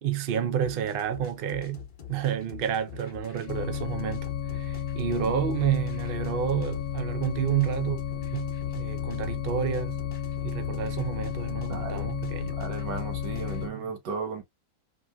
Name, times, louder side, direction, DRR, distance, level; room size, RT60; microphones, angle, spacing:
voice 1, 0.0-8.0 8.3-10.0 10.4-12.6 13.3-13.9, right 9 dB, 65° right, 0.5 m, -30 dB
sound 1, 0.5-13.7, left 9 dB, 40° left, 0.8 m, -46 dB
sound 2, 3.5-13.7, left 9 dB, 80° left, 1.2 m, -33 dB
voice 2, 11.7-12.1 12.5-14.4, right 5 dB, 90° right, 1.6 m, -35 dB
4.5 x 3.0 x 2.3 m
omnidirectional pair, 1.8 m